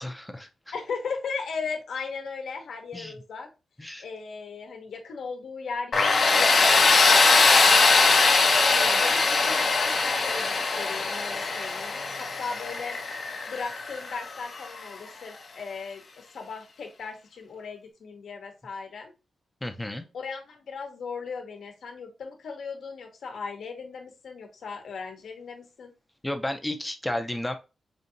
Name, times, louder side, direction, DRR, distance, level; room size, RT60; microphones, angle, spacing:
voice 1, 0.0-0.7 2.9-3.1 3.8-4.0 19.6-20.0 26.2-27.5, left 1 dB, 10° left, 6 dB, 0.6 m, -32 dB
voice 2, 0.7-3.5 4.0-8.4 8.7-13.0 13.5-19.1 20.1-25.9, left 5 dB, 70° left, 3 dB, 1.0 m, -37 dB
Tools, 5.9-14.7, left 4 dB, 45° left, 0.7 m, -21 dB
5.2 x 2.7 x 2.7 m, 0.29 s
wide cardioid pair, 160°, 0 cm